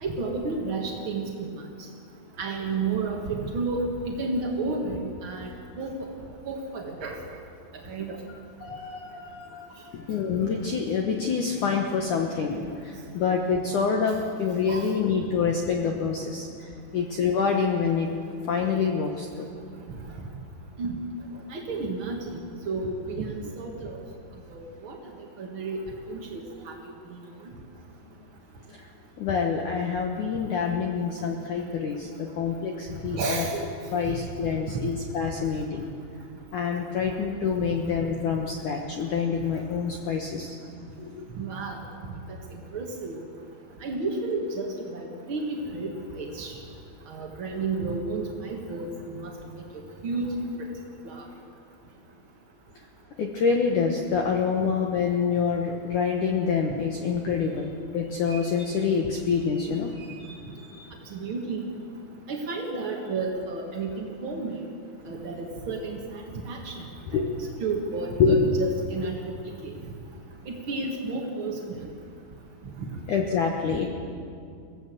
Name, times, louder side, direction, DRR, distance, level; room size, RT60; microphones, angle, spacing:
voice 1, 0.0-1.5 2.4-5.5 5.8-5.9 6.4-7.2 7.9-8.2 14.7-14.9 20.8-21.0 21.5-22.4 22.6-23.3 23.6-24.0 24.5-25.0 25.4-25.8 26.1-26.4 26.7-26.8 27.1-27.2 33.1-33.7 41.3-41.8 42.5-43.2 43.8-46.5 47.1-48.9 49.5-49.6 50.0-50.3 50.6-50.7 51.0-51.2 61.1-61.6 62.3-64.5 65.1-66.0 66.4-66.8 67.1-69.1 69.6-69.7 70.4-71.8, right 3 dB, 70° right, 0 dB, 1.2 m, -31 dB
voice 2, 8.3-18.1 18.5-19.3 28.7-28.8 29.2-33.5 33.9-35.8 36.5-40.6 41.0-41.3 53.2-60.9 67.1-67.4 68.2-68.7 69.0-69.1 73.1-73.9, left 5 dB, 70° left, 2 dB, 1.9 m, -27 dB
23.0 x 16.5 x 7.8 m, 2.4 s
omnidirectional pair, 5.3 m